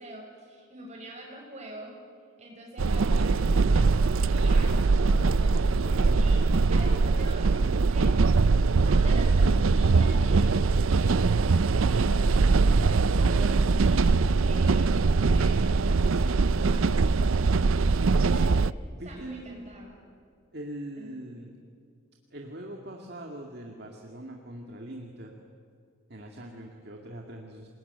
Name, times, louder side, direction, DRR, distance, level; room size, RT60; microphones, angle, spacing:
voice 1, 0.0-2.0 2.4-5.9 6.2-6.4 6.7-8.1 8.8-12.1 12.8-16.9 18.0-18.5 19.0-20.0 21.0-21.2, right 1 dB, 35° right, -1 dB, 6.7 m, -45 dB
Steam Train Interior, 2.8-18.7, right 4 dB, 75° right, 0.5 m, -22 dB
voice 2, 5.8-6.3 18.9-19.8 20.5-21.6 22.3-25.3 26.1-27.7, right 1 dB, 50° right, 1 dB, 2.1 m, -42 dB
28.0 x 20.0 x 9.5 m, 2.3 s
head